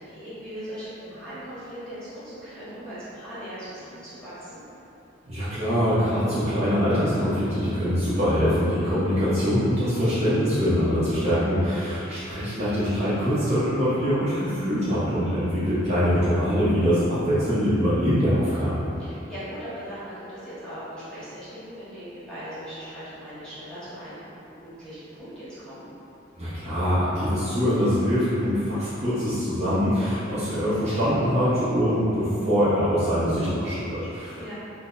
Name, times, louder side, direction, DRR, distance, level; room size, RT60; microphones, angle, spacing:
voice 1, 0.0-4.6 12.3-12.6 19.0-25.9 34.3-34.5, equal, 5° left, -14 dB, 1.1 m, -39 dB
voice 2, 5.3-18.8 26.4-34.5, equal, 35° right, -12 dB, 0.7 m, -23 dB
3.3 x 2.0 x 3.7 m, 2.9 s
head